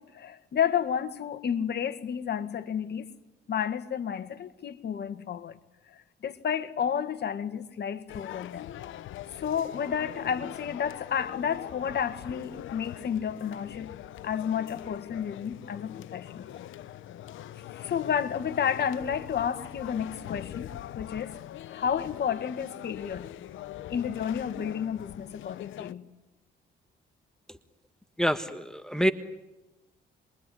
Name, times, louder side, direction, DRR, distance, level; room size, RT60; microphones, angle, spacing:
voice 1, 0.0-3.1 3.5-5.6 5.9-8.7 9.4-13.9 14.2-16.7 17.7-21.4 21.7-23.3 23.9-26.1, left 8 dB, 55° left, 1.8 m, -31 dB
sound 1, 8.1-25.9, left 12 dB, 80° left, 0.9 m, -42 dB
voice 2, 28.2-29.1, equal, 5° left, 1.4 m, -26 dB
27.5 x 23.0 x 9.5 m
cardioid pair, 90°, 20 cm